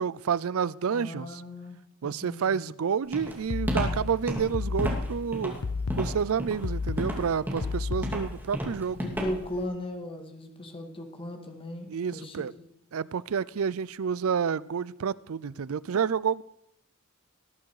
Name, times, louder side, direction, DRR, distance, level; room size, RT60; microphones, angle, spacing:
voice 1, 0.0-1.4 2.0-5.6 6.0-9.1 11.9-12.5 12.9-16.4, right 6 dB, 70° right, 20 dB, 0.4 m, -29 dB
voice 2, 0.9-2.7 8.9-12.7, left 1 dB, 25° left, 4 dB, 1.9 m, -37 dB
Walk footsteps, 3.1-9.6, equal, 10° right, 2.8 m, -32 dB
sound 1, 3.5-8.5, left 4 dB, 75° left, 0.6 m, -32 dB
18.5 x 11.0 x 4.8 m, 0.72 s
head